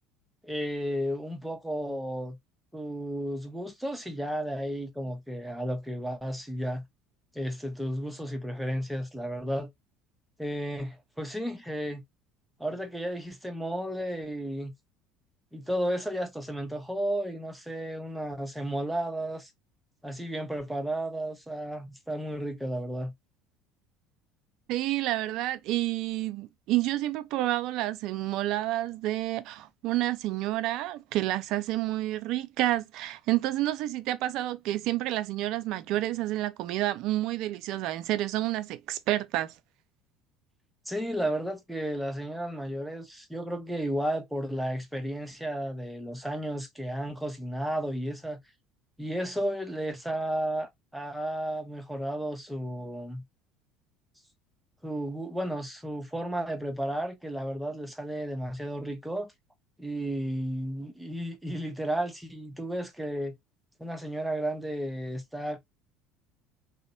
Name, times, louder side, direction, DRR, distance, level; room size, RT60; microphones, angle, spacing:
voice 1, 0.4-2.4 2.7-6.8 7.3-9.7 10.4-12.0 12.6-14.7 15.5-19.5 20.0-23.1 40.9-48.4 49.0-53.2 54.8-59.3 59.8-63.4 63.8-65.6, right 1 dB, 5° right, 0.7 m, -33 dB
voice 2, 24.7-39.5, right 15 dB, 60° right, 0.3 m, -29 dB
2.6 x 2.1 x 2.6 m
hypercardioid pair, 65°, 0 cm